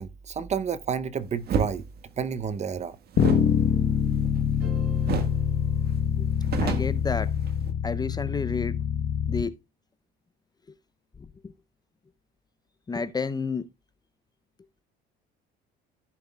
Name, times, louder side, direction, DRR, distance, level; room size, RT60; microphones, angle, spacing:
voice 1, 0.0-1.8 2.2-3.0, right 7 dB, 35° right, 0.7 m, -30 dB
sound 1, 1.5-1.7 3.1-4.7 5.1-5.4 5.7-5.8 6.2-7.7, right 6 dB, 55° right, 1.5 m, -30 dB
Bass guitar, 3.2-9.4, left 8 dB, 55° left, 1.1 m, -25 dB
sound 2, 4.6-6.9, right 1 dB, 75° right, 5.1 m, -49 dB
voice 2, 6.6-7.3 7.8-8.8 9.3-9.5 11.2-11.5 12.9-13.7, left 4 dB, 20° left, 0.6 m, -30 dB
15.0 x 7.1 x 2.3 m
cardioid pair, 105°, 20 cm